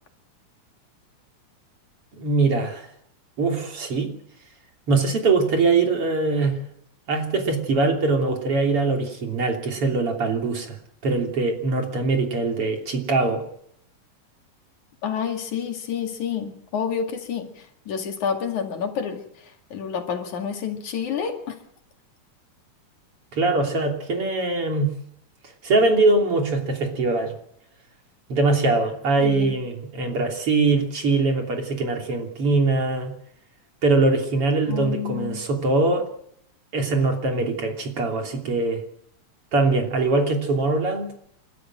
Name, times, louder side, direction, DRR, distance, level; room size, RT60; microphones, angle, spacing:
voice 1, 2.1-2.9 3.4-4.1 4.9-6.6 7.1-10.8 11.0-13.4 23.3-24.9 25.6-27.4 28.3-33.1 33.8-36.1 36.7-38.8 39.5-41.1, right 3 dB, 50° right, 3 dB, 3.9 m, -22 dB
voice 2, 15.0-19.2 19.7-21.6 29.2-29.6 34.7-35.4, left 7 dB, 80° left, 4 dB, 3.7 m, -29 dB
29.5 x 13.0 x 7.8 m, 0.72 s
omnidirectional pair, 3.4 m